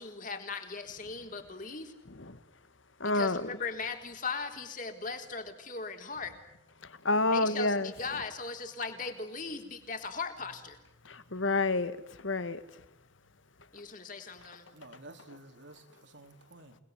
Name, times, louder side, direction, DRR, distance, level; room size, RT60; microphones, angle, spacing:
voice 1, 0.0-1.9 3.0-6.4 7.2-10.8 13.7-14.7, left 4 dB, 45° left, 5 dB, 3.9 m, -38 dB
voice 2, 3.0-3.5 7.0-7.9 11.1-12.6, left 2 dB, 85° left, 12 dB, 2.0 m, -29 dB
voice 3, 14.7-16.8, right 2 dB, 70° right, 7 dB, 3.4 m, -52 dB
29.0 x 20.5 x 9.5 m, 0.84 s
head